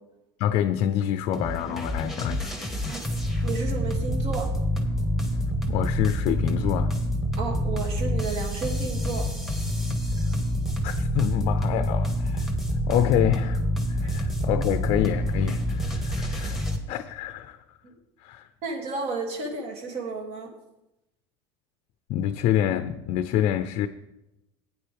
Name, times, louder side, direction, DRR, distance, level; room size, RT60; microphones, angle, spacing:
voice 1, 0.4-2.5 5.7-7.0 10.8-12.5 12.9-13.6 14.0-17.6 18.2-18.5 22.1-23.9, left 10 dB, 50° left, 0.6 m, -26 dB
sound 1, 1.3-16.8, equal, ahead, 1.5 m, -27 dB
voice 2, 3.4-4.5 7.4-9.3 17.8-17.9 18.6-20.5, right 4 dB, 50° right, 2.6 m, -32 dB
14.5 x 9.4 x 3.5 m
supercardioid pair, 135°, 13 cm